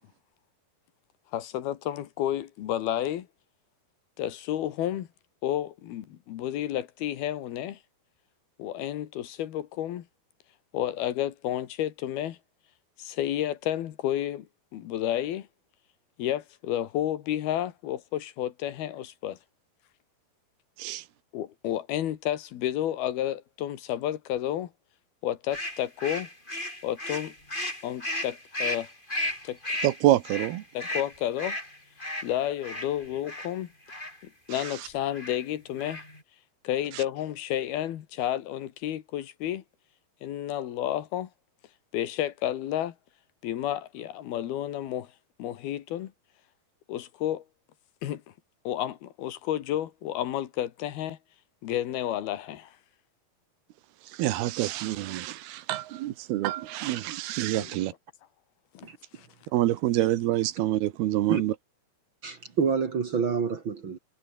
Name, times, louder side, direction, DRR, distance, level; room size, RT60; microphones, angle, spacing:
voice 1, 1.3-3.3 4.2-5.1 5.4-7.8 8.6-10.1 10.7-12.4 13.0-14.5 14.7-15.5 16.2-19.4 21.3-24.7 25.2-26.3 26.8-27.3 27.8-28.9 29.4-29.6 30.8-31.6 32.2-33.7 34.5-36.0 36.6-39.6 40.2-41.3 41.9-43.0 43.4-45.1 45.4-46.1 46.9-47.4 48.0-48.2 48.7-51.2 51.6-52.7 57.5-57.7 58.8-58.9 59.2-59.3, left 12 dB, 80° left, 3.5 m, -31 dB
sound 1, 25.5-33.5 33.9-34.2 34.5-34.8 35.1-35.4 35.7-36.2, left 1 dB, 10° left, 7.2 m, -34 dB
voice 2, 29.8-30.6 34.5-34.7 36.9-37.0 54.1-57.9 59.5-61.5, right 15 dB, 85° right, 3.1 m, -27 dB
voice 3, 62.2-64.0, right 6 dB, 45° right, 1.7 m, -27 dB
omnidirectional pair, 4.4 m